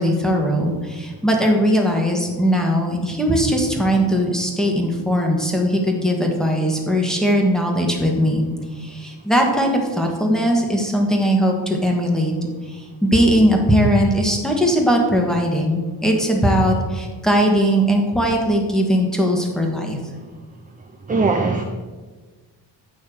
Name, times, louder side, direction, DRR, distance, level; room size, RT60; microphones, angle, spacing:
voice 1, 0.0-8.5 8.7-12.3 12.7-20.0, equal, ahead, 0 dB, 1.3 m, -19 dB
voice 2, 21.1-21.6, right 3 dB, 20° right, 3 dB, 0.5 m, -19 dB
8.7 x 3.2 x 6.2 m, 1.4 s
cardioid pair, 100°, 42 cm